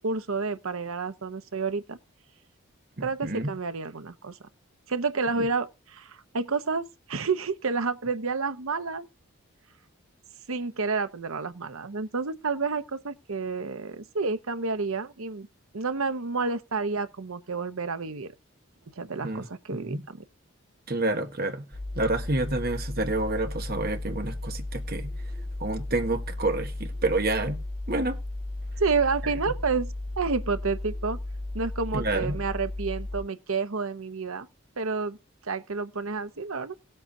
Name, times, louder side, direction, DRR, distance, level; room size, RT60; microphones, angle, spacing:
voice 1, 0.0-2.0 3.0-4.4 4.9-9.1 10.5-15.5 15.7-18.3 19.0-20.2 28.8-29.9 30.2-31.2 31.5-34.5 34.8-35.2 35.5-36.7, right 4 dB, 85° right, 0.9 m, -30 dB
voice 2, 3.0-3.5 5.4-5.5 19.2-19.5 19.7-20.0 20.9-21.7 21.9-25.1 25.6-27.6 27.9-28.2 31.9-32.4, right 2 dB, 45° right, 1.4 m, -28 dB
sound 1, 21.7-33.2, left 2 dB, 25° left, 7.8 m, -35 dB
18.0 x 7.9 x 2.7 m
head